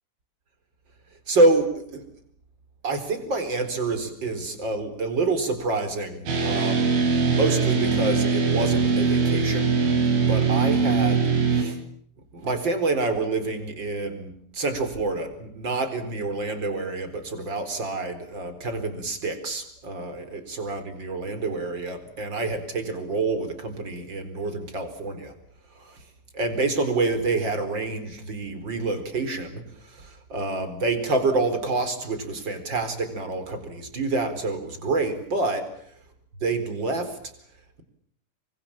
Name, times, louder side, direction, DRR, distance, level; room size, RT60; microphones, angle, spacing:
voice 1, 1.3-2.0 2.8-9.7 10.2-11.8 12.3-25.3 25.7-26.0 26.3-35.7 36.4-37.2, right 3 dB, 25° right, 9 dB, 4.4 m, -27 dB
sound 1, 6.3-11.6, right 5 dB, 80° right, 7.4 m, -22 dB
28.0 x 24.5 x 7.3 m, 0.65 s
omnidirectional pair, 5.4 m